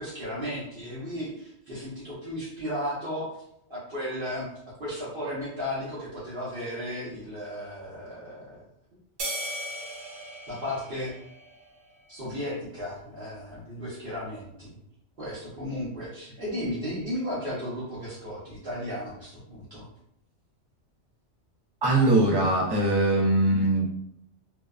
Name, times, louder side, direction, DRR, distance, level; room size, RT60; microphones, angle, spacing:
voice 1, 0.0-3.3 3.7-8.6 10.5-11.1 12.1-14.8 15.2-19.9, equal, 50° right, -10 dB, 0.9 m, -35 dB
sound 1, 9.2-11.8, right 1 dB, 85° right, 1.0 m, -37 dB
voice 2, 21.8-23.9, right 2 dB, 35° right, -3 dB, 0.4 m, -21 dB
2.7 x 2.1 x 2.3 m, 0.75 s
omnidirectional pair, 1.2 m